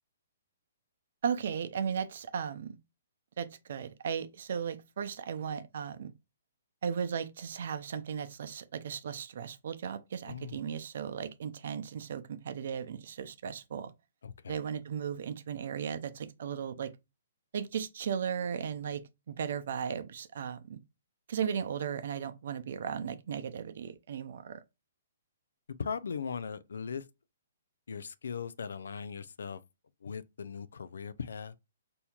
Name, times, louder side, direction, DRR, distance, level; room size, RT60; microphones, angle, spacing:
voice 1, 1.2-2.8 3.4-6.1 6.8-13.9 14.5-16.9 17.5-19.0 19.3-20.8 21.3-24.6, right 7 dB, 65° right, 0.5 m, -36 dB
voice 2, 10.3-10.6 14.2-14.6 25.8-27.0 27.9-29.6 30.0-31.5, left 6 dB, 80° left, 0.4 m, -39 dB
4.3 x 2.7 x 2.3 m
hypercardioid pair, 145°, 0 cm